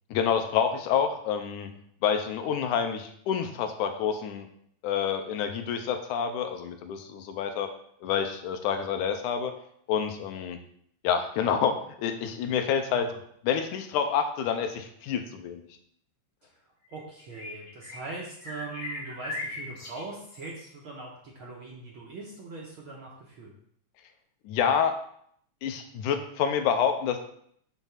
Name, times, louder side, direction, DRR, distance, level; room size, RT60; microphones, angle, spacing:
voice 1, 0.1-1.7 2.0-4.5 4.8-7.7 8.0-9.5 9.9-10.6 11.0-13.1 13.4-15.6 24.5-24.9 25.6-27.2, left 7 dB, 85° left, 6 dB, 2.1 m, -28 dB
sound 1, 16.9-18.2 18.4-20.7, left 2 dB, 45° left, 2.5 m, -39 dB
voice 2, 16.9-23.5, right 3 dB, 60° right, -3 dB, 1.4 m, -41 dB
7.0 x 3.6 x 5.7 m, 0.66 s
omnidirectional pair, 3.5 m